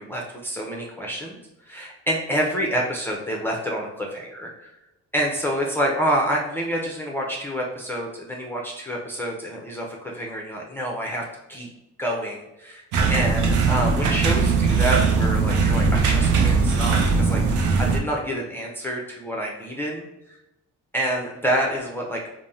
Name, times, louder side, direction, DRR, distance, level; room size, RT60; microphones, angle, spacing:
voice 1, 0.0-1.4 1.6-4.7 5.1-11.2 11.5-11.7 12.0-12.8 13.1-20.1 20.9-22.2, equal, 5° left, -2 dB, 0.5 m, -27 dB
sound 1, 12.9-18.0, right 4 dB, 80° right, 0.5 m, -20 dB
3.3 x 2.0 x 2.6 m, 0.93 s
cardioid pair, 90°, 30 cm